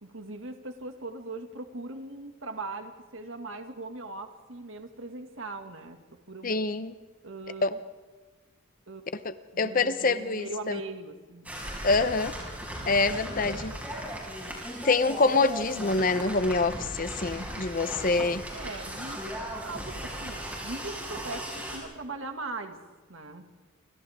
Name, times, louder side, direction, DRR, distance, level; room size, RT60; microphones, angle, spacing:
voice 1, 0.0-6.7 7.2-7.7 8.9-9.1 9.5-11.5 12.7-13.1 18.5-22.8 23.1-23.5, right 2 dB, 80° right, 6 dB, 2.1 m, -40 dB
voice 2, 6.4-7.0 7.6-7.8 9.2-10.8 11.8-12.3 12.9-13.7 14.8-18.4, left 3 dB, 40° left, 12 dB, 0.7 m, -26 dB
sound 1, 11.4-21.8, equal, 5° right, 5.9 m, -37 dB
29.0 x 25.5 x 3.6 m, 1.3 s
head